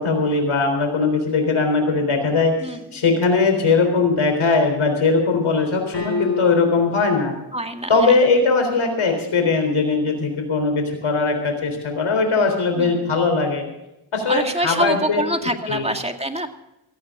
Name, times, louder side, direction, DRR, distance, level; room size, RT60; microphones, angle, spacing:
voice 1, 0.0-7.3 7.9-13.6 14.1-15.3 15.7-15.9, left 4 dB, 85° left, 5 dB, 3.8 m, -20 dB
voice 2, 2.6-3.0 7.5-8.1 12.8-13.2 14.3-16.5, right 1 dB, 15° right, 5 dB, 2.2 m, -25 dB
sound 1, 5.9-7.0, left 4 dB, 60° left, 4.5 m, -27 dB
17.5 x 15.0 x 3.7 m, 0.91 s
cardioid pair, 55°, 48 cm